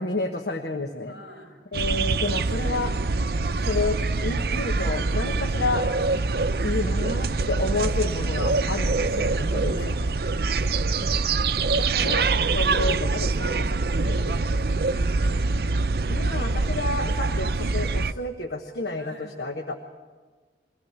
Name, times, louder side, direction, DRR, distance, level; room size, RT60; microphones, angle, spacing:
voice 1, 0.0-1.1 1.7-2.9 3.6-5.9 6.6-9.9 11.8-12.3 12.5-14.7 16.1-19.8, left 2 dB, 65° left, 4 dB, 1.2 m, -30 dB
voice 2, 1.0-1.6 3.3-3.6 9.0-11.0 14.6-15.9 19.0-19.3, right 1 dB, 85° left, -1 dB, 6.7 m, -47 dB
sound 1, 1.7-18.1, right 3 dB, 55° right, 0.6 m, -24 dB
23.0 x 17.0 x 7.3 m, 1.4 s
head